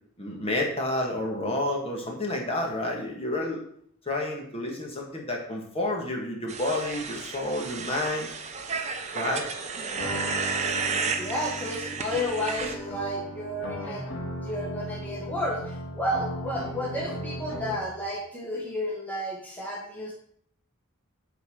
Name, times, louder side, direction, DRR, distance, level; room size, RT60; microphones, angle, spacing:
voice 1, 0.2-3.6 4.1-8.3 9.1-9.5, left 1 dB, 25° left, 0 dB, 1.7 m, -30 dB
sound 1, 6.5-12.7, right 4 dB, 30° right, 0.8 m, -32 dB
sound 2, 9.9-18.0, equal, 65° left, 2.2 m, -37 dB
voice 2, 11.2-14.1 14.4-20.1, left 1 dB, 10° left, -4 dB, 1.5 m, -32 dB
9.4 x 4.2 x 6.2 m, 0.64 s
head